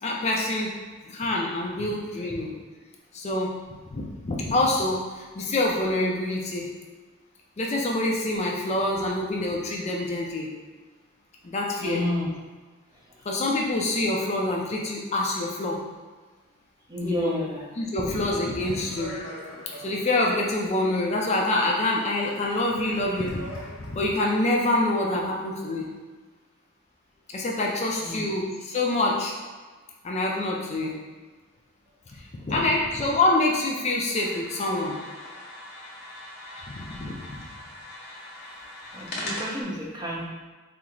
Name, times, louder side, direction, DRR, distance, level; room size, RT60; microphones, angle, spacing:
voice 1, 0.0-0.8 1.1-2.5 3.1-3.6 3.9-6.7 7.6-10.5 11.4-12.0 13.2-15.8 17.0-17.4 17.8-19.2 19.8-25.9 27.3-29.3 30.0-30.9 32.1-35.0 36.7-37.4, left 2 dB, 30° left, -2 dB, 0.4 m, -26 dB
voice 2, 11.8-12.3 12.9-13.1 16.9-17.7 28.0-28.3 32.6-32.9 38.5-38.6 38.9-40.3, left 1 dB, 20° right, -4 dB, 0.7 m, -31 dB
Speech, 18.3-24.1, equal, 90° left, 0.9 m, -44 dB
sound 1, 34.1-39.6, left 1 dB, 50° left, 0.9 m, -40 dB
4.4 x 2.0 x 3.7 m, 1.4 s
head